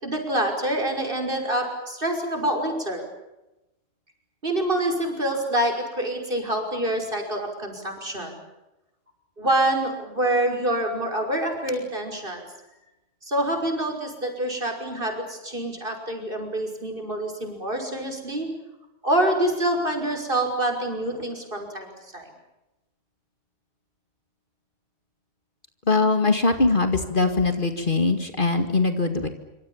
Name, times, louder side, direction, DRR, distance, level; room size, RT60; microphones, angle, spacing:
voice 1, 0.0-3.0 4.4-8.4 9.4-12.5 13.2-18.5 19.0-22.3, right 1 dB, 45° right, 3 dB, 6.0 m, -26 dB
voice 2, 25.9-29.3, left 3 dB, 45° left, 7 dB, 2.3 m, -21 dB
26.0 x 26.0 x 7.3 m, 0.96 s
omnidirectional pair, 1.2 m